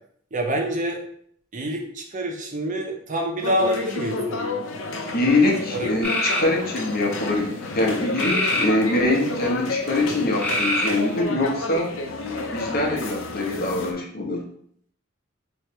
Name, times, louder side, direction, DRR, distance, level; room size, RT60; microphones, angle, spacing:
voice 1, 0.3-1.0 1.5-4.6 5.7-5.9, equal, 40° right, 2 dB, 0.7 m, -26 dB
sound 1, 3.4-13.9, left 2 dB, 75° left, 0.6 m, -30 dB
voice 2, 5.1-11.9 12.5-14.4, left 2 dB, 50° left, 0 dB, 0.9 m, -23 dB
sound 2, 6.0-6.5 8.1-9.2 10.4-11.2, left 1 dB, 5° left, 0.8 m, -24 dB
3.1 x 3.1 x 4.5 m, 0.63 s
head